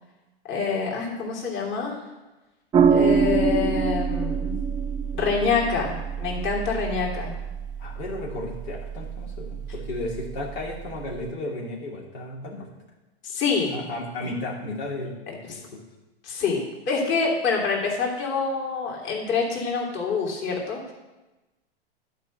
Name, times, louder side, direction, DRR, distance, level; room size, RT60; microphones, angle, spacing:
voice 1, 0.5-2.0 2.9-4.7 5.1-7.3 13.2-13.9 15.5-15.6 16.2-20.9, left 5 dB, 35° left, -2 dB, 3.2 m, -26 dB
sound 1, 2.7-11.3, right 6 dB, 15° right, 0.4 m, -26 dB
voice 2, 7.8-12.7 13.7-15.8, left 2 dB, 70° left, -3 dB, 2.7 m, -34 dB
11.5 x 5.4 x 7.7 m, 1.1 s
hypercardioid pair, 115°, 32 cm